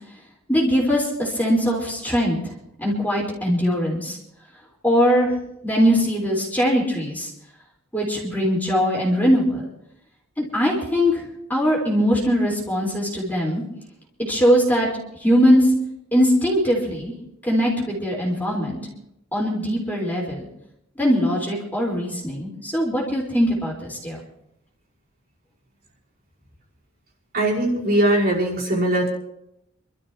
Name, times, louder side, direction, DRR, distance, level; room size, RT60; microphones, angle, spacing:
voice 1, 0.5-2.4 2.8-4.2 4.8-5.3 5.6-7.3 7.9-9.7 10.4-11.2 11.5-13.6 14.3-14.9 15.2-15.7 16.1-17.1 17.4-18.8 19.3-20.5 21.0-24.2, equal, 10° left, -4 dB, 4.4 m, -21 dB
voice 2, 27.3-29.1, right 1 dB, 45° right, -4 dB, 5.5 m, -20 dB
28.0 x 13.5 x 3.0 m, 0.80 s
head